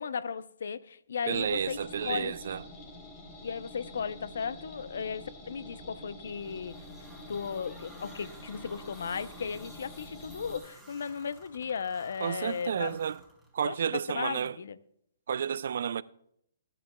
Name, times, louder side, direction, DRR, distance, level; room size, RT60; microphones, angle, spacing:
voice 1, 0.0-2.3 3.4-6.8 7.3-13.0 13.6-14.8, left 6 dB, 70° left, 0.6 m, -36 dB
sound 1, 1.3-10.6, left 1 dB, 30° left, 3.9 m, -47 dB
voice 2, 1.3-2.6 12.2-13.2 13.5-14.6 15.3-16.0, right 8 dB, 65° right, 0.4 m, -31 dB
sound 2, 6.3-13.8, right 2 dB, 5° left, 3.7 m, -55 dB
20.5 x 11.0 x 2.3 m
hypercardioid pair, 130°, 0 cm